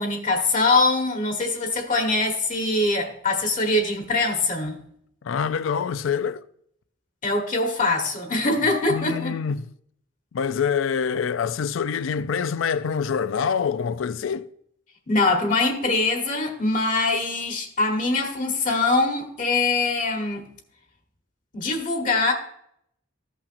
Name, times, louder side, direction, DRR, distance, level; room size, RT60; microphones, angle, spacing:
voice 1, 0.0-4.8 7.2-9.3 15.1-20.5 21.5-22.3, left 3 dB, 40° left, 1.2 m, -23 dB
voice 2, 5.2-6.4 8.9-9.7 10.3-14.5, left 6 dB, 75° left, 0.4 m, -25 dB
14.5 x 5.8 x 2.6 m
head